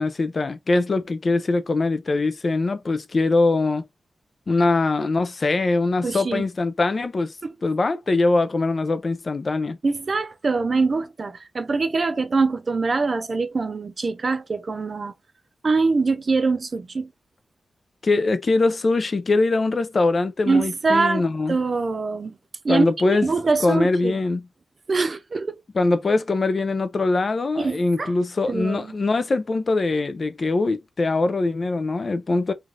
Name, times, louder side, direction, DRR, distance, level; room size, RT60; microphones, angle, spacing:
voice 1, 0.0-3.9 4.5-7.4 7.6-9.8 18.0-21.6 22.7-23.3 23.6-24.4 25.7-32.5, left 3 dB, 40° left, 0.4 m, -22 dB
voice 2, 6.0-6.4 7.4-7.5 9.8-15.1 15.6-17.1 20.5-22.3 22.6-24.1 24.9-25.6 27.6-28.1 28.5-28.9, right 4 dB, 40° right, 0.4 m, -23 dB
3.2 x 2.4 x 2.4 m
wide cardioid pair, 130°, 0 cm